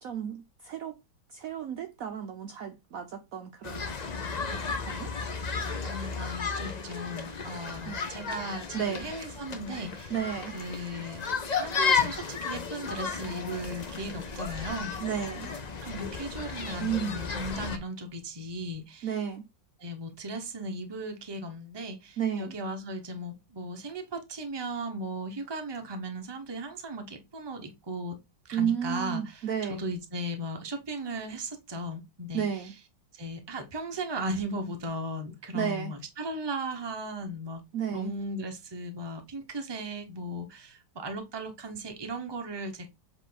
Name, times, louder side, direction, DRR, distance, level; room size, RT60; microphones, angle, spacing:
voice 1, 0.0-1.0 1.3-3.9 4.5-5.1 7.9-8.0 8.7-9.1 10.1-10.6 15.0-15.5 16.8-17.2 19.0-19.5 22.2-22.5 28.5-29.8 32.3-32.7 35.5-35.9 37.7-38.1, right 8 dB, 65° right, 0.9 m, -32 dB
sound 1, 3.6-17.8, left 5 dB, 70° left, 0.4 m, -33 dB
voice 2, 5.8-10.2 10.5-11.3 11.6-14.9 15.8-19.2 19.8-28.2 28.4-32.7 33.1-37.6 37.9-42.9, right 1 dB, 20° right, 0.8 m, -37 dB
7.3 x 3.8 x 4.0 m
omnidirectional pair, 2.0 m